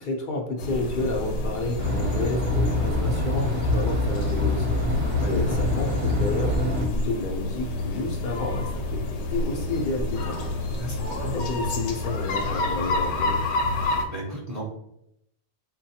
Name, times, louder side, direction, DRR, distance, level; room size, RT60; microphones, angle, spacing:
voice 1, 0.0-9.0 9.3-13.4, left 2 dB, 60° left, 1 dB, 0.6 m, -31 dB
sound 1, 0.6-14.1, left 2 dB, 75° left, 0.9 m, -29 dB
sound 2, 1.8-6.9, left 2 dB, 60° right, 0.8 m, -25 dB
voice 2, 5.0-5.6 10.8-11.3 13.8-14.6, right 1 dB, 20° right, -3 dB, 0.5 m, -36 dB
3.7 x 2.2 x 2.7 m, 0.78 s
omnidirectional pair, 1.2 m